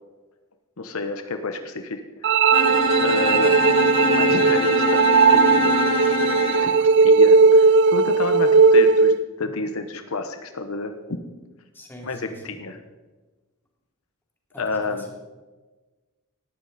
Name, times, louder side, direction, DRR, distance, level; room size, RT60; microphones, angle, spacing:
voice 1, 0.8-2.4 3.0-3.6 4.1-5.7 6.6-11.2 12.0-12.8 14.6-15.0, left 3 dB, 75° left, 7 dB, 1.0 m, -30 dB
sound 1, 2.2-9.2, right 4 dB, 55° right, 0.4 m, -17 dB
Bowed string instrument, 2.5-6.7, left 4 dB, 30° left, 2.9 m, -24 dB
voice 2, 11.7-12.5 14.5-15.1, left 1 dB, 10° left, -1 dB, 3.3 m, -42 dB
18.5 x 12.5 x 4.2 m, 1.3 s
head